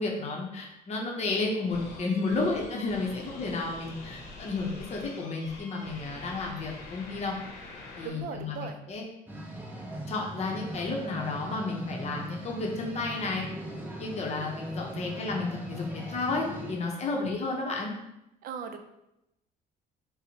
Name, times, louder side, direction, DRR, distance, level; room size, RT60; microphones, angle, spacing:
voice 1, 0.0-7.4 8.0-9.0 10.1-13.5 14.0-17.9, left 3 dB, 40° left, 0 dB, 0.6 m, -32 dB
sound 1, 1.7-8.1, left 2 dB, 85° left, 0.8 m, -45 dB
voice 2, 8.0-8.8 17.2-17.3 18.4-18.8, right 7 dB, 60° right, 7 dB, 0.4 m, -39 dB
sound 2, 9.3-16.7, right 1 dB, 10° right, 0.6 m, -40 dB
4.2 x 2.0 x 2.8 m, 0.86 s
cardioid pair, 110°, 17 cm